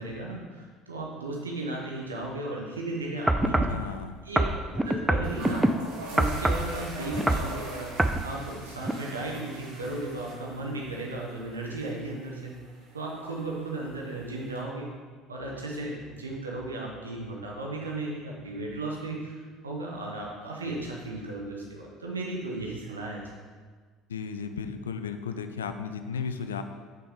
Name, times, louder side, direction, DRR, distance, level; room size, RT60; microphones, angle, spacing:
voice 1, 0.0-3.9 4.2-4.4 4.7-5.7 6.1-12.5 12.9-14.9 15.3-23.2, right 2 dB, 80° right, -2 dB, 0.9 m, -35 dB
sound 1, 3.2-3.4 3.7-3.8 4.8-4.9 5.2-14.6, right 1 dB, 60° right, 1.3 m, -43 dB
sound 2, 3.3-3.8 4.4-5.7 6.2-6.7 7.1-7.5 8.0-8.2 8.8-8.9, right 1 dB, 10° right, 0.4 m, -24 dB
voice 2, 3.4-4.1 24.1-26.6, left 6 dB, 75° left, 8 dB, 0.3 m, -34 dB
5.8 x 3.7 x 4.9 m, 1.5 s
figure-of-eight pair, 60°, 0 cm